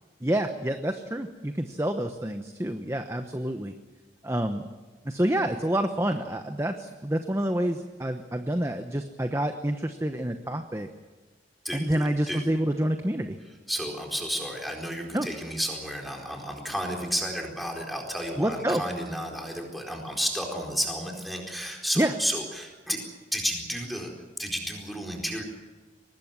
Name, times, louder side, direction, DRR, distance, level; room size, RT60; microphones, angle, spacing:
voice 1, 0.2-3.7 4.2-4.6 5.0-10.9 11.7-13.4 15.1-15.3 18.4-18.8 22.0-22.1, right 1 dB, 15° right, 7 dB, 0.9 m, -28 dB
voice 2, 11.6-12.4 13.7-23.0 23.3-24.1 24.4-25.4, equal, ahead, 1 dB, 4.4 m, -32 dB
24.0 x 19.5 x 7.5 m, 1.3 s
head